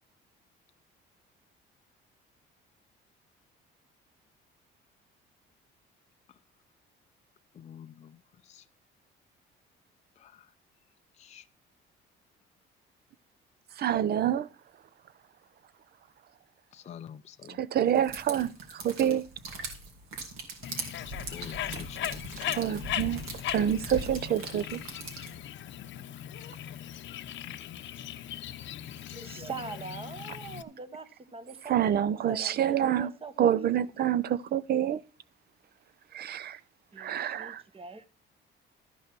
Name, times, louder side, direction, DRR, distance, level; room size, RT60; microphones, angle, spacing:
voice 1, 7.6-8.1 8.5-8.6 10.2-10.3 11.2-11.4 16.7-17.6 21.3-22.6, left 8 dB, 35° left, 0.5 m, -47 dB
voice 2, 13.8-14.5 17.5-19.2 22.5-23.2 23.5-24.8 31.7-33.1 33.4-35.0 36.1-36.6 37.0-37.6, right 10 dB, 50° right, 0.6 m, -27 dB
sound 1, 17.9-25.4, right 2 dB, 75° right, 2.7 m, -41 dB
Bird, 20.6-30.6, left 11 dB, 60° left, 0.7 m, -38 dB
voice 3, 29.1-33.8 36.9-38.0, right 4 dB, 25° right, 1.3 m, -43 dB
13.0 x 5.6 x 6.0 m
cardioid pair, 105°, 21 cm